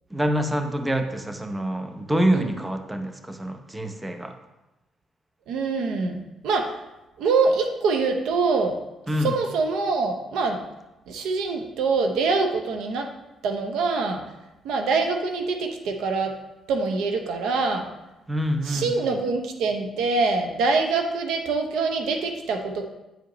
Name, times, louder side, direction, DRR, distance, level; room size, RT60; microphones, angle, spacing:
voice 1, 0.1-4.3 9.1-9.3 18.3-19.0, equal, 15° right, 6 dB, 0.7 m, -26 dB
voice 2, 5.5-6.8 7.2-8.8 9.2-10.6 11.1-13.1 13.4-14.2 14.6-16.3 16.7-17.9 18.6-22.8, right 4 dB, 85° right, 4 dB, 0.7 m, -24 dB
8.9 x 5.0 x 3.0 m, 0.98 s
cardioid pair, 90°, 0 cm